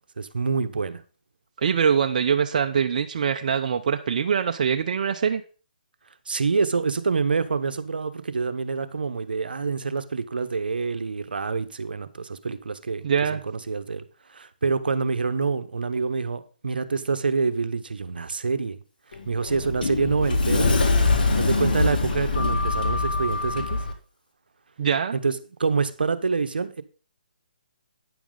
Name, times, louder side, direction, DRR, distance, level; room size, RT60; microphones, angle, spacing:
voice 1, 0.2-1.0 6.3-13.0 13.3-14.0 14.3-18.8 19.3-20.7 21.4-23.8 25.1-26.8, right 4 dB, 80° right, 0.9 m, -26 dB
voice 2, 1.6-5.4 13.0-13.4 24.8-25.1, right 7 dB, 50° right, 0.6 m, -23 dB
Sliding door, 19.1-23.9, left 3 dB, 70° left, 1.9 m, -23 dB
9.5 x 7.1 x 3.8 m
hypercardioid pair, 155°, 5 cm